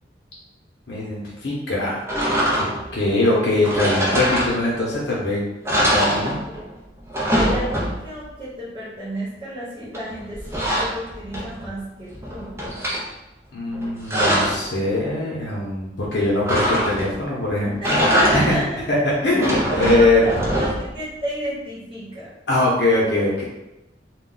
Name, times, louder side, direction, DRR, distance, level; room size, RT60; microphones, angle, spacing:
voice 1, 0.9-2.3 2.9-5.4 5.8-6.3 13.5-18.0 18.3-18.5 18.9-19.0 19.2-20.2 22.5-23.4, left 2 dB, 75° left, -5 dB, 0.7 m, -22 dB
sound 1, 2.1-3.0 3.6-4.9 5.3-5.4 5.6-6.7 7.0-8.2 9.9-11.7 12.1-13.0 13.7-14.7 16.5-17.3 17.7-18.7 19.2-21.0, equal, 15° right, 0.5 m, -23 dB
voice 2, 7.3-12.5 17.8-18.8 20.0-22.3, equal, 30° right, -9 dB, 1.0 m, -30 dB
2.2 x 2.2 x 3.8 m, 0.98 s
head